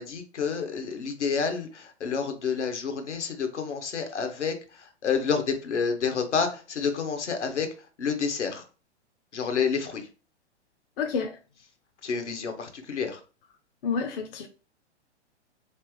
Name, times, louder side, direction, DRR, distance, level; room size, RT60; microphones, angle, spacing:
voice 1, 0.0-7.7 8.0-8.6 9.3-10.1 12.0-13.2, left 6 dB, 75° left, 0.9 m, -29 dB
voice 2, 11.0-11.3 13.8-14.5, left 5 dB, 55° left, 0.5 m, -29 dB
3.3 x 3.0 x 3.0 m
figure-of-eight pair, 105°, 35 cm